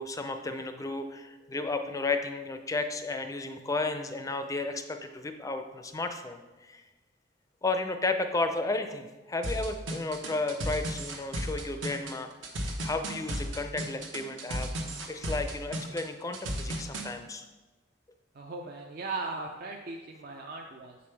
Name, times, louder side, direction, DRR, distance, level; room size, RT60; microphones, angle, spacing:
voice 1, 0.0-6.8 7.6-12.3 12.8-14.7 15.1-17.5, left 3 dB, 15° left, 7 dB, 0.4 m, -33 dB
sound 1, 9.4-17.1, right 1 dB, 75° right, 1.0 m, -34 dB
voice 2, 18.3-21.0, right 3 dB, 50° right, 1 dB, 0.5 m, -38 dB
7.6 x 5.2 x 3.3 m, 1.2 s
head